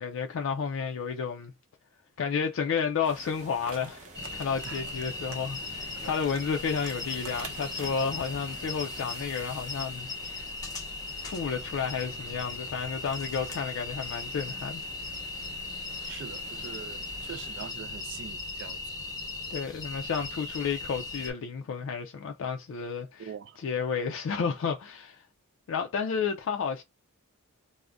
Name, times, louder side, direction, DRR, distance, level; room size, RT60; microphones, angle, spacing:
voice 1, 0.0-1.5 2.2-4.0 4.3-10.5 11.2-14.8 19.5-23.3 23.6-25.2 25.7-26.8, left 6 dB, 60° left, 0.3 m, -31 dB
sound 1, 3.0-17.7, right 2 dB, 35° right, 0.7 m, -49 dB
sound 2, 3.6-5.4 5.7-5.8 6.1-8.5 9.9-10.2 10.6-10.8, right 5 dB, 75° right, 0.7 m, -46 dB
sound 3, 4.1-21.3, left 3 dB, 15° left, 0.6 m, -38 dB
voice 2, 16.1-18.8 23.2-23.6, right 8 dB, 55° right, 0.3 m, -43 dB
2.4 x 2.1 x 3.3 m
head